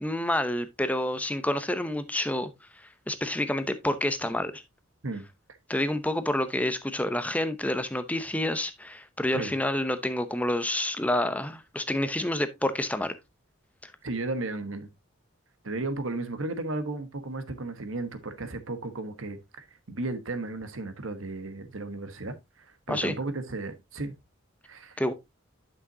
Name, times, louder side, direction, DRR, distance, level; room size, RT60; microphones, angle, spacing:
voice 1, 0.0-4.6 5.7-13.2 13.8-13.9 22.9-23.1 25.0-25.1, left 1 dB, 5° left, 0.7 m, -28 dB
voice 2, 14.0-14.9 15.6-24.1 24.7-25.0, right 2 dB, 75° right, 1.2 m, -34 dB
10.5 x 6.1 x 2.7 m
head